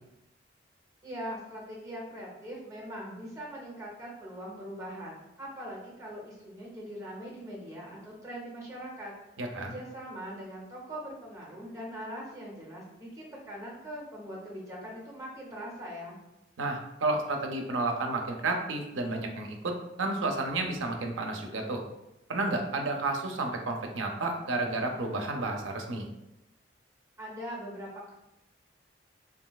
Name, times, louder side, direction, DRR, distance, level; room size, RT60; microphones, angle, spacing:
voice 1, 1.0-9.1 9.6-16.2 27.2-28.1, equal, 15° right, -3 dB, 0.7 m, -41 dB
voice 2, 9.4-9.7 16.6-21.8 22.3-26.1, right 2 dB, 85° right, 3 dB, 0.5 m, -31 dB
3.0 x 2.6 x 2.2 m, 0.90 s
head